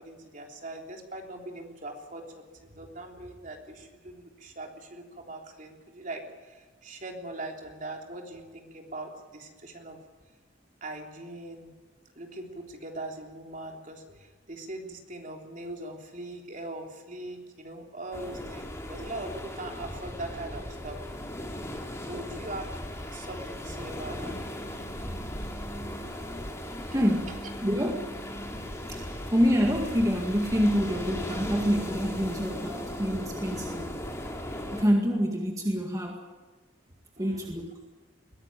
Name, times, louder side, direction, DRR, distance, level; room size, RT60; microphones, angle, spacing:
voice 1, 0.0-10.0 10.8-11.7 12.2-21.0 22.1-24.3 27.0-27.4 37.2-37.5, right 2 dB, 45° right, 2 dB, 3.4 m, -41 dB
sound 1, 18.1-34.8, left 1 dB, 15° left, 2.8 m, -37 dB
voice 2, 26.9-27.3 27.6-28.1 28.9-33.9 34.7-36.2 37.2-37.7, equal, 20° right, 1 dB, 2.0 m, -27 dB
21.5 x 17.0 x 9.0 m, 1.4 s
head